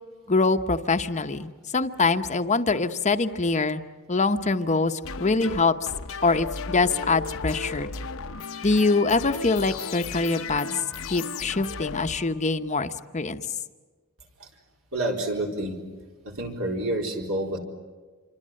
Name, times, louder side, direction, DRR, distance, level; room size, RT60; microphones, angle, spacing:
voice 1, 0.3-3.8 4.1-5.7 6.2-7.9 8.6-10.7 11.1-13.4, left 3 dB, 35° left, 8 dB, 0.9 m, -24 dB
sound 1, 5.0-12.8, left 5 dB, 65° left, 0.9 m, -35 dB
voice 2, 14.9-15.7 16.2-17.6, right 1 dB, 65° right, 1 dB, 4.3 m, -28 dB
27.5 x 25.0 x 7.7 m, 1.4 s
head